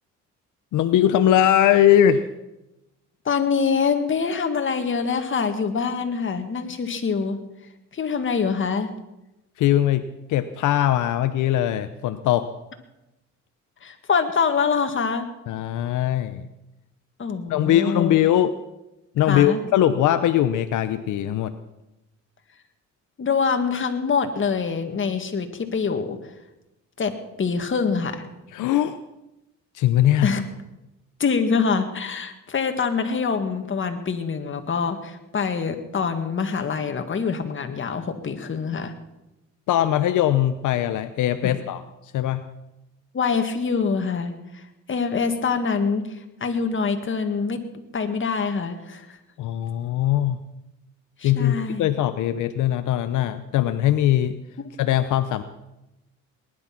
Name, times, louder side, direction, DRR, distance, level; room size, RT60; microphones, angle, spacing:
voice 1, 0.7-2.3 9.6-12.5 15.5-16.4 17.5-18.5 19.1-21.6 28.5-29.0 29.7-30.3 39.7-42.5 49.4-50.4 51.2-54.4 54.8-55.4, left 11 dB, 80° left, 10 dB, 0.8 m, -21 dB
voice 2, 3.3-7.4 7.9-8.9 13.8-15.3 17.2-18.2 19.3-19.6 23.2-26.2 27.0-28.2 30.2-30.4 31.2-38.9 41.4-41.6 43.1-44.6 44.9-47.6 47.9-49.2 51.2-51.9, left 5 dB, 40° left, 7 dB, 1.9 m, -25 dB
19.5 x 11.0 x 6.0 m, 0.96 s
cardioid pair, 90°, 30 cm